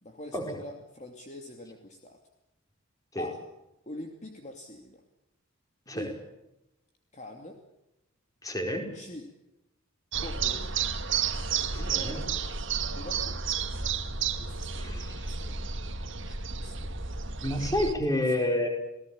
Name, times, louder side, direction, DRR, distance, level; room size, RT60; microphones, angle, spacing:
voice 1, 0.0-2.2 3.2-3.4 3.9-5.0 5.9-6.1 7.1-7.6 8.9-9.3 10.2-10.7 11.6-12.0 12.9-13.4 14.4-15.6 16.5-16.9 17.5-17.9 18.4-18.5, left 1 dB, 35° left, 4 dB, 2.7 m, -44 dB
voice 2, 8.4-8.9 11.7-12.3 14.7-15.3 17.4-18.7, left 1 dB, 15° left, 3 dB, 5.2 m, -29 dB
sound 1, 10.1-17.9, right 6 dB, 60° right, 2.1 m, -32 dB
28.5 x 18.5 x 8.7 m, 0.91 s
head